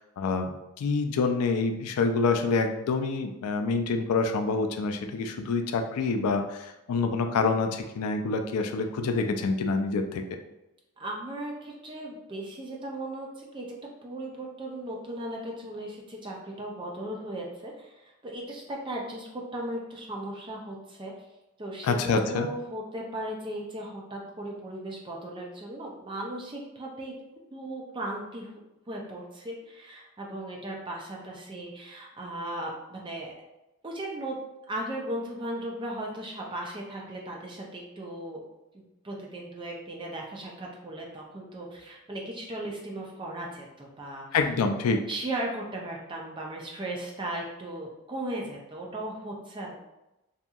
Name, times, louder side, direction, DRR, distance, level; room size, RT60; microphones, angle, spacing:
voice 1, 0.0-10.2 21.8-22.5 44.3-45.0, left 4 dB, 85° left, 6 dB, 0.3 m, -27 dB
voice 2, 11.0-13.8 14.0-21.1 21.6-27.2 27.5-28.6 28.9-33.3 33.8-34.4 34.7-38.4 38.7-44.3 45.1-49.7, right 1 dB, 20° right, -1 dB, 0.4 m, -37 dB
2.7 x 2.6 x 2.3 m, 0.95 s
head